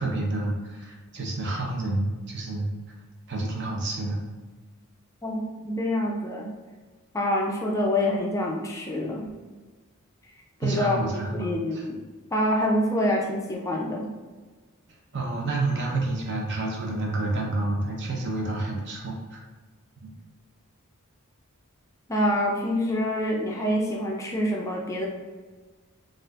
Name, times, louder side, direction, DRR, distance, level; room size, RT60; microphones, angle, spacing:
voice 1, 0.0-2.7 3.3-4.2 10.6-11.9 15.1-19.4 20.0-20.1, right 2 dB, 55° right, -1 dB, 0.7 m, -29 dB
voice 2, 5.2-6.5 7.1-9.3 10.6-11.0 11.3-12.0 12.3-14.1 22.1-25.1, left 1 dB, 15° left, -2 dB, 0.4 m, -26 dB
4.2 x 2.5 x 2.4 m, 1.3 s
head